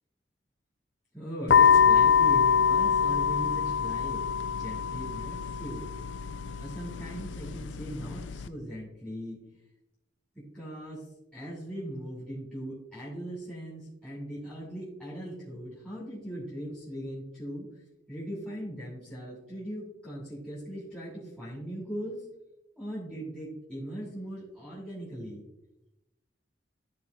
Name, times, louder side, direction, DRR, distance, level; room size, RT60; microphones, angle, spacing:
voice 1, 1.1-4.2 4.5-5.9 6.6-9.4 10.5-11.0 11.3-17.7 18.1-22.3 22.8-25.4, equal, 5° left, -9 dB, 2.4 m, -39 dB
sound 1, 1.5-8.5, left 7 dB, 80° left, 0.4 m, -25 dB
13.5 x 4.5 x 2.6 m, 0.90 s
head